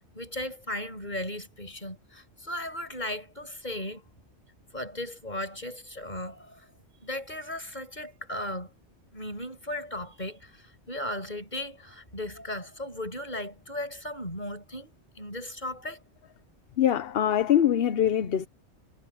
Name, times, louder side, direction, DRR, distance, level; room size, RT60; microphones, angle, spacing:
voice 1, 0.1-4.0 4.7-6.7 7.0-8.7 9.1-16.0, left 1 dB, 40° left, 7.8 m, -36 dB
voice 2, 16.8-18.5, left 10 dB, 60° left, 0.9 m, -23 dB
omnidirectional pair, 1.2 m